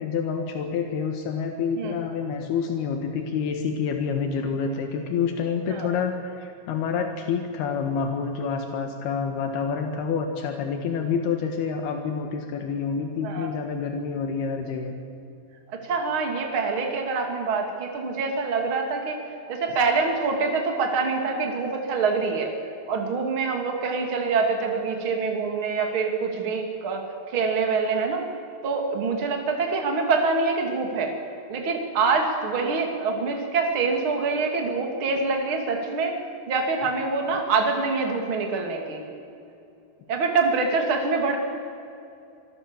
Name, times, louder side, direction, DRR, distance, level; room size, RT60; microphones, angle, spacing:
voice 1, 0.0-14.9, left 6 dB, 80° left, 4 dB, 3.5 m, -28 dB
voice 2, 15.7-19.2 19.5-22.5 22.9-28.2 28.6-31.1 31.5-36.2 36.5-39.0 40.1-41.4, right 4 dB, 35° right, 3 dB, 3.2 m, -25 dB
26.0 x 22.0 x 7.2 m, 2.7 s
omnidirectional pair, 4.4 m